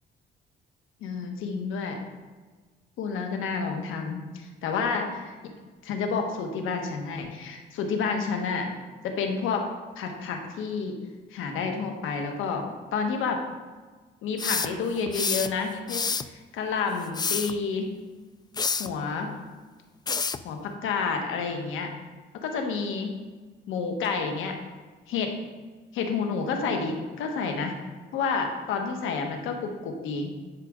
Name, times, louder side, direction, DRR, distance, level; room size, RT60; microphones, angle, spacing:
voice 1, 1.0-2.0 3.0-5.4 5.8-8.7 9.0-9.6 10.0-11.0 11.3-12.7 12.9-13.4 14.2-17.9 18.8-19.3 20.4-21.9 22.4-23.1 23.7-24.5 25.1-25.3 25.9-27.7 28.1-30.3, left 5 dB, 90° left, 4 dB, 1.3 m, -29 dB
sound 1, 14.4-15.5 15.9-16.3 17.0-17.5 18.6-18.9 20.1-20.4, left 5 dB, 20° left, 0.3 m, -28 dB
11.0 x 5.0 x 3.7 m, 1.4 s
cardioid pair, 90°, 20 cm